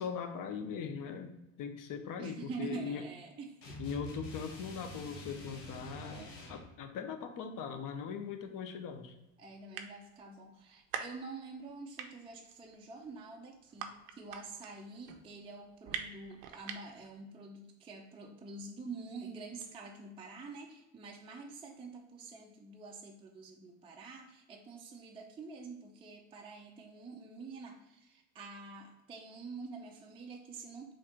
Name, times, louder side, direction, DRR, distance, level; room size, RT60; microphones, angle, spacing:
voice 1, 0.0-1.3 1.6-3.0 3.8-9.1, left 6 dB, 40° left, 7 dB, 0.7 m, -40 dB
voice 2, 2.2-3.8 6.1-6.4 9.4-30.9, right 4 dB, 10° right, 0 dB, 0.4 m, -47 dB
sound 1, 3.6-6.7, left 1 dB, 75° left, 1.1 m, -46 dB
sound 2, 8.2-8.3 9.0-9.1 9.3-9.4 9.6-10.2 10.6-11.7 12.0-17.1, right 8 dB, 85° right, 0.7 m, -42 dB
4.2 x 2.5 x 4.3 m, 0.97 s
supercardioid pair, 85°, 50 cm